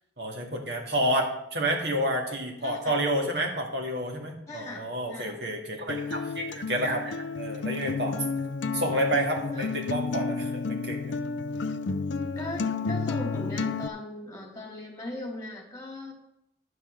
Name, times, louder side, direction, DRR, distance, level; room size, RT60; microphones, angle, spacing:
voice 1, 0.2-8.2 8.7-11.1, right 1 dB, 65° right, 1 dB, 2.3 m, -29 dB
voice 2, 2.6-2.9 4.5-4.8 5.1-5.4 9.5-9.6 12.4-16.1, left 1 dB, 20° left, 1 dB, 2.8 m, -38 dB
Acoustic guitar, 5.9-13.9, left 4 dB, 85° left, 0.6 m, -31 dB
11.0 x 5.6 x 7.8 m, 0.80 s
head